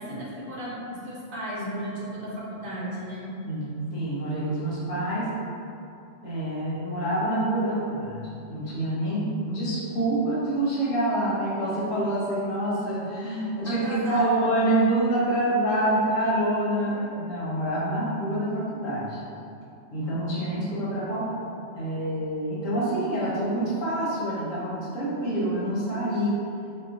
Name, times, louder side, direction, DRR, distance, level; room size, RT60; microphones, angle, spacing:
voice 1, 0.0-3.3 13.6-14.4 16.8-17.1, equal, 55° right, -7 dB, 0.7 m, -35 dB
voice 2, 3.4-5.3 6.2-19.2 19.9-21.4 21.7-26.4, right 1 dB, 90° left, -7 dB, 1.2 m, -26 dB
3.0 x 2.1 x 3.6 m, 2.7 s
omnidirectional pair, 1.3 m